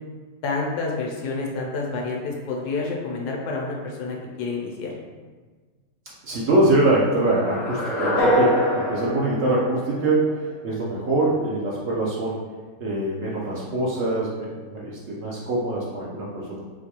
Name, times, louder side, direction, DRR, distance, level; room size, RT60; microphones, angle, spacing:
voice 1, 0.4-4.9, left 3 dB, 70° left, -1 dB, 1.2 m, -29 dB
voice 2, 6.2-12.4 12.8-16.6, right 2 dB, 85° right, -6 dB, 0.6 m, -24 dB
sound 1, 7.3-10.4, equal, 50° left, 0.8 m, -24 dB
4.4 x 2.3 x 2.9 m, 1.4 s
omnidirectional pair, 1.9 m